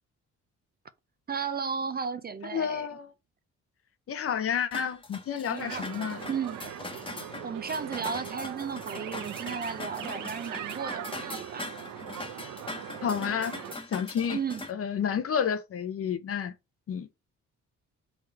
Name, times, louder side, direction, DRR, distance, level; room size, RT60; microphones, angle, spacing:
voice 1, 1.3-2.9 5.5-5.9 6.3-6.6 7.4-11.7 14.3-14.6, right 6 dB, 30° right, 0.5 m, -34 dB
voice 2, 2.5-3.1 4.1-6.2 13.0-13.5 13.9-14.4 14.7-16.5 16.9-17.1, left 8 dB, 50° left, 0.7 m, -30 dB
sound 1, 4.7-14.7, left 2 dB, 15° left, 1.1 m, -41 dB
sound 2, 5.6-13.7, right 10 dB, 85° right, 0.7 m, -40 dB
4.0 x 3.1 x 4.2 m
cardioid pair, 90°, 30 cm